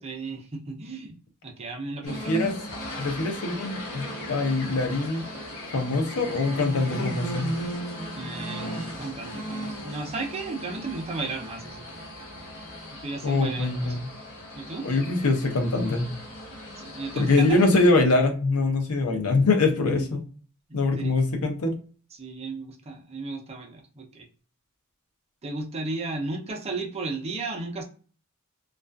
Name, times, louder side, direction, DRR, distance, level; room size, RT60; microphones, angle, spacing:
voice 1, 0.0-2.4 8.2-12.0 13.0-14.0 14.5-14.9 16.8-17.6 19.8-20.1 20.7-20.8 21.0-21.2 22.1-24.3 25.4-27.8, right 3 dB, 30° right, 2 dB, 0.5 m, -34 dB
voice 2, 2.0-2.5 3.0-5.2 5.7-7.5 13.2-14.0 14.8-16.1 17.2-20.2 20.7-21.8, left 3 dB, 90° left, 5 dB, 0.6 m, -23 dB
sound 1, 2.1-17.9, equal, 70° left, 1.2 m, -37 dB
2.3 x 2.3 x 2.2 m, 0.40 s
head